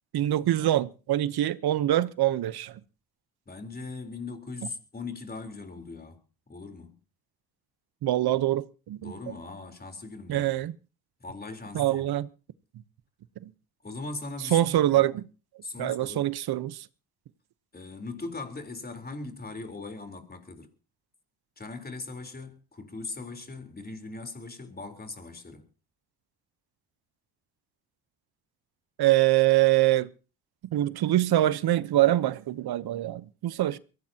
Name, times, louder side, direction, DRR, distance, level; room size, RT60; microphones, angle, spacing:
voice 1, 0.1-2.7 8.0-9.1 10.3-10.7 11.7-12.3 13.4-13.5 14.5-15.2 15.8-16.8 29.0-30.1 30.7-33.8, right 14 dB, 65° right, 1.0 m, -24 dB
voice 2, 3.5-6.2 6.5-7.0 9.0-10.7 11.2-12.1 13.8-15.1 15.6-16.4 17.7-20.7 21.6-25.7, left 3 dB, 25° left, 3.9 m, -40 dB
23.0 x 16.5 x 2.9 m
cardioid pair, 90°, 41 cm